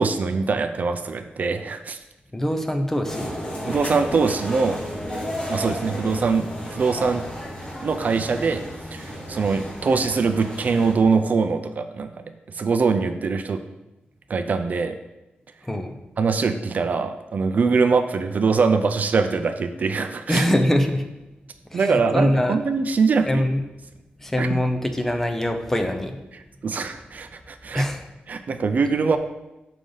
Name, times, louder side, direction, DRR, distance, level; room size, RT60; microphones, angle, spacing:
voice 1, 0.0-2.0 3.7-4.8 5.5-7.3 7.8-8.6 8.9-12.2 12.5-13.6 14.3-15.0 16.2-20.5 21.7-23.4 24.4-24.6 26.3-27.9 28.3-29.2, right 4 dB, 50° right, 9 dB, 0.4 m, -23 dB
voice 2, 2.3-3.3 15.6-15.9 20.3-21.0 21.7-22.6 23.3-23.6 24.2-26.2 27.7-28.0, left 1 dB, 10° left, 5 dB, 0.6 m, -23 dB
sound 1, 3.0-10.9, equal, 30° left, 1.9 m, -33 dB
6.6 x 5.0 x 3.9 m, 0.99 s
wide cardioid pair, 140°, 4 cm